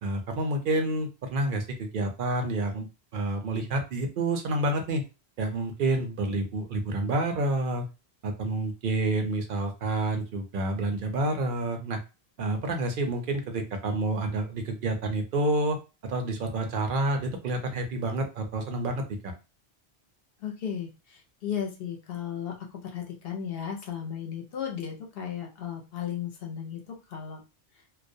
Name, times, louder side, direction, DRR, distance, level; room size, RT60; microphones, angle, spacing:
voice 1, 0.0-2.9 3.1-5.0 5.4-7.9 8.2-12.0 12.4-15.8 16.0-19.3, right 2 dB, 60° right, 5 dB, 0.6 m, -29 dB
voice 2, 20.4-27.4, left 8 dB, 65° left, 1 dB, 0.8 m, -35 dB
2.3 x 2.1 x 2.6 m, 0.29 s
omnidirectional pair, 1.1 m